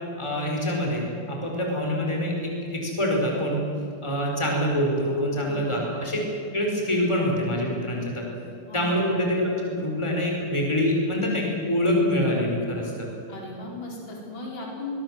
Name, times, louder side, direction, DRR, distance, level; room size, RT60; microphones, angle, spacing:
voice 1, 0.2-3.6 4.0-6.2 6.5-8.2 8.7-13.1, equal, 10° left, 0 dB, 5.0 m, -25 dB
voice 2, 5.4-5.8 8.7-8.9 13.3-15.0, left 2 dB, 60° left, -2 dB, 5.3 m, -36 dB
23.5 x 21.0 x 7.9 m, 2.5 s
omnidirectional pair, 2.4 m